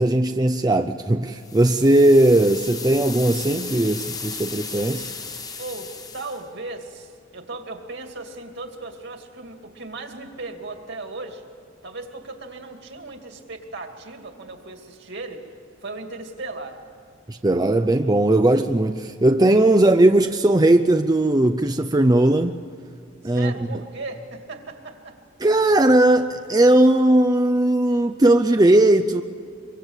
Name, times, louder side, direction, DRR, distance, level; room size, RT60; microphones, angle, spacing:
voice 1, 0.0-5.1 17.3-22.6 23.2-23.5 25.4-29.2, right 1 dB, 20° right, 7 dB, 0.5 m, -18 dB
sound 1, 1.4-6.4, left 5 dB, 20° left, 1.2 m, -35 dB
voice 2, 5.6-11.5 11.8-15.5 15.8-16.8 23.2-25.2, right 3 dB, 60° right, 4 dB, 2.6 m, -36 dB
25.0 x 23.5 x 8.2 m, 2.4 s
head